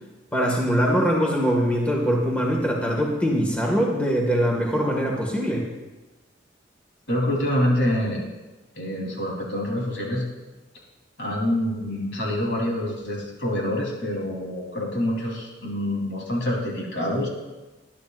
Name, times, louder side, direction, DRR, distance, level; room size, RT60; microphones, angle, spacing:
voice 1, 0.3-5.7, equal, 5° left, -2 dB, 1.8 m, -22 dB
voice 2, 7.1-8.2 8.8-10.2 11.2-17.3, left 1 dB, 70° left, -2 dB, 3.6 m, -26 dB
21.0 x 11.0 x 2.5 m, 1.2 s
head